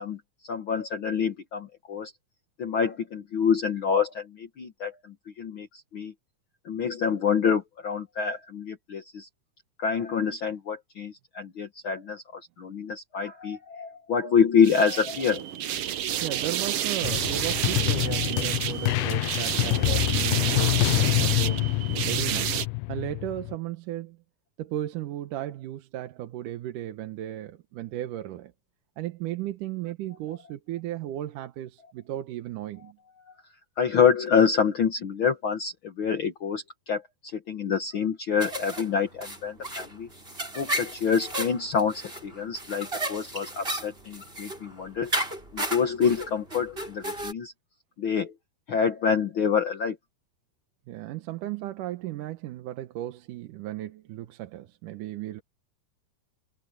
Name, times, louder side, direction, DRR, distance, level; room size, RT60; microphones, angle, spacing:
voice 1, 0.0-2.1 2.6-6.1 6.6-9.3 9.8-15.7 16.1-16.2 18.0-18.3 18.8-18.9 33.3-33.4 33.8-40.1 40.5-45.1 45.5-47.5 48.0-48.3 48.7-50.0, left 6 dB, 55° left, 1.5 m, -27 dB
sound 1, 14.6-22.7, right 10 dB, 65° right, 1.6 m, -29 dB
voice 2, 16.2-21.7 22.1-22.6 22.9-24.2 24.6-28.5 29.0-33.0 50.9-55.4, right 13 dB, 85° right, 2.6 m, -35 dB
sound 2, 17.0-23.6, left 23 dB, 80° left, 1.9 m, -26 dB
sound 3, 38.4-47.3, right 1 dB, 15° right, 5.6 m, -34 dB
omnidirectional pair, 3.6 m